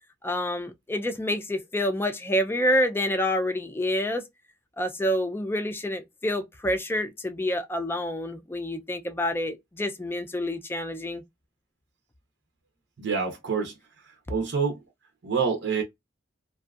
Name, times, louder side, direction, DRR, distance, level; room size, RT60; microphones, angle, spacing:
voice 1, 0.2-4.2 4.8-11.2, left 1 dB, 10° left, 0.4 m, -28 dB
voice 2, 13.0-14.8 15.2-15.8, right 5 dB, 70° right, 0.6 m, -28 dB
2.6 x 2.3 x 2.3 m
head